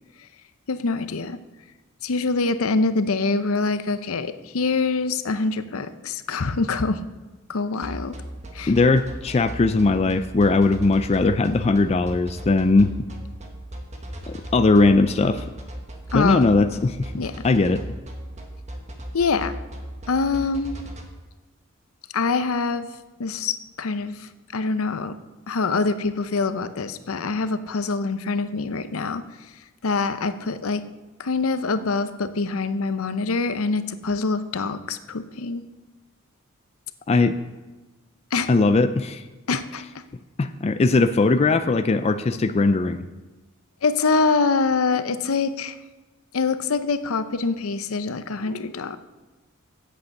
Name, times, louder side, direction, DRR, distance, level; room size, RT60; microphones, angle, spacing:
voice 1, 0.7-1.4 2.0-7.0 7.5-8.1 8.5-8.7 16.1-16.4 17.2-17.4 19.1-19.5 20.1-20.8 22.1-22.9 23.2-25.1 25.5-29.2 29.8-30.8 31.2-35.6 38.3-38.5 39.5-39.8 43.8-45.8 46.3-49.0, left 4 dB, 80° left, 11 dB, 0.6 m, -24 dB
sound 1, 7.8-21.0, equal, 35° right, 1.4 m, -36 dB
voice 2, 8.7-12.9 14.3-15.4 16.1-17.1 17.4-17.8 37.1-37.3 38.5-39.2 40.4-43.0, left 3 dB, 30° left, 10 dB, 0.4 m, -19 dB
8.5 x 7.8 x 7.0 m, 1.2 s
head